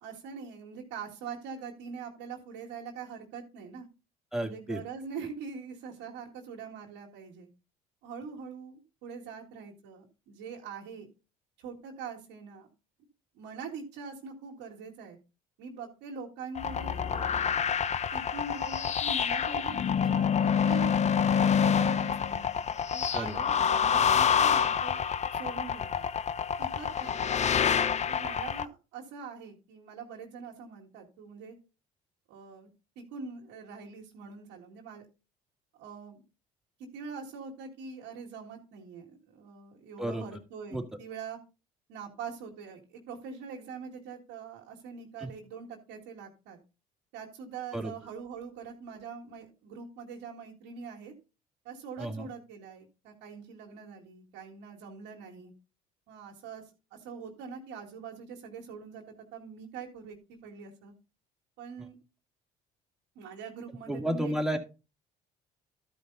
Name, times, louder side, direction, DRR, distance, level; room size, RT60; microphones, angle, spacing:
voice 1, 0.0-3.9 4.4-7.5 8.0-11.1 11.6-12.7 13.3-15.2 15.6-17.5 18.1-21.0 21.3-22.4 22.9-25.0 25.3-26.1 26.6-31.5 32.3-32.7 33.0-35.1 35.8-36.2 36.9-41.4 41.9-46.6 47.1-51.1 51.6-55.5 56.1-56.6 56.9-60.2 60.4-60.9 61.6-62.0 63.2-64.6, right 5 dB, 80° right, -3 dB, 2.1 m, -43 dB
voice 2, 4.3-4.8 23.1-23.3 40.0-40.2 40.7-40.8 45.2-45.3 47.7-47.9 52.0-52.3 63.9-64.6, right 1 dB, ahead, 4 dB, 2.2 m, -32 dB
sound 1, 16.6-28.7, left 7 dB, 40° left, 0.6 m, -27 dB
13.0 x 5.2 x 3.9 m, 0.31 s
supercardioid pair, 70°, 18 cm